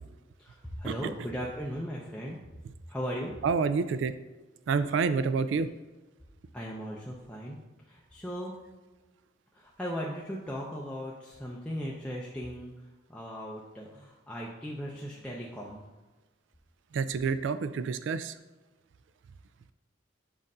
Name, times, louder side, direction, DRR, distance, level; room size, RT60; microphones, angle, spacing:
voice 1, 0.4-2.4 2.9-3.4 6.5-7.6 7.9-8.6 9.5-15.9, equal, 5° left, -4 dB, 0.5 m, -38 dB
voice 2, 3.4-4.1 4.7-5.7 16.9-18.3, right 5 dB, 70° right, 12 dB, 0.3 m, -28 dB
7.4 x 2.6 x 5.4 m, 1.2 s
head